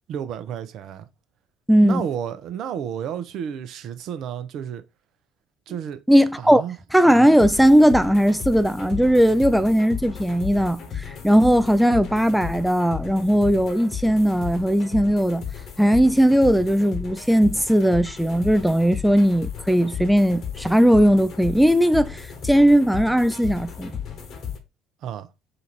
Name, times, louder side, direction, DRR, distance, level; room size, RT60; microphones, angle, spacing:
voice 1, 0.1-1.1 1.8-4.8 5.7-6.0 6.4-6.8 25.0-25.3, right 8 dB, 55° right, 0.6 m, -31 dB
voice 2, 1.7-2.1 6.1-6.6 6.9-15.4 15.8-23.9, equal, ahead, 0.4 m, -18 dB
sound 1, 7.4-24.6, left 8 dB, 50° left, 1.1 m, -35 dB
3.9 x 2.5 x 4.4 m
hypercardioid pair, 60°, 0 cm